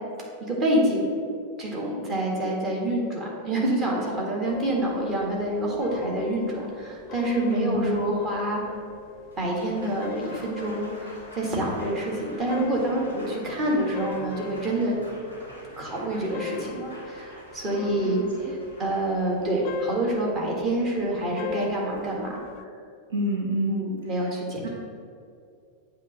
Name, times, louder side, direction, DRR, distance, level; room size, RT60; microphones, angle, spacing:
voice 1, 0.4-1.2 1.6-8.6 9.4-15.0 15.8-22.4 23.7-24.7, right 1 dB, 30° right, -3 dB, 1.7 m, -27 dB
sound 1, 4.5-22.7, left 6 dB, 40° left, 0.3 m, -41 dB
voice 2, 7.4-8.0 17.7-18.5 23.1-23.8 24.2-24.3 24.6-24.7, right 1 dB, 60° right, -2 dB, 0.8 m, -28 dB
Applause, 9.3-21.4, equal, 80° right, 1.8 m, -47 dB
7.7 x 3.2 x 6.2 m, 2.3 s
figure-of-eight pair, 90°, 0 cm